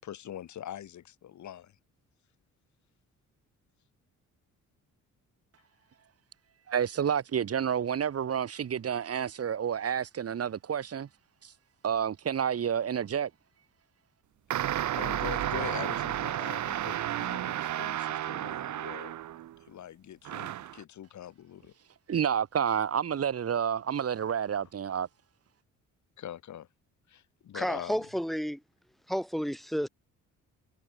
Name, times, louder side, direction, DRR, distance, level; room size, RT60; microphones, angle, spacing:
voice 1, 0.0-1.8 14.9-19.1 19.6-21.7 26.2-26.7 27.1-28.0, left 11 dB, 70° left, 7.2 m, -43 dB
voice 2, 6.7-11.1 11.4-11.5 11.8-13.3 22.1-25.1, right 8 dB, 50° right, 3.4 m, -29 dB
sound 1, 14.5-19.5 20.2-20.8, right 12 dB, 70° right, 2.1 m, -32 dB
voice 3, 27.5-28.6 29.1-29.9, equal, ahead, 3.5 m, -31 dB
cardioid pair, 90°, 30 cm